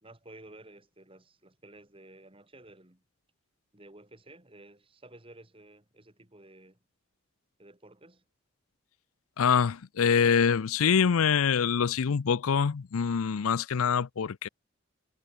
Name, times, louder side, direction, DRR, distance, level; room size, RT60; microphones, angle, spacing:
voice 1, 0.0-3.0 3.7-6.8 7.6-8.2, right 2 dB, 25° right, 2.5 m, -53 dB
voice 2, 9.4-14.5, left 6 dB, 85° left, 0.5 m, -25 dB
head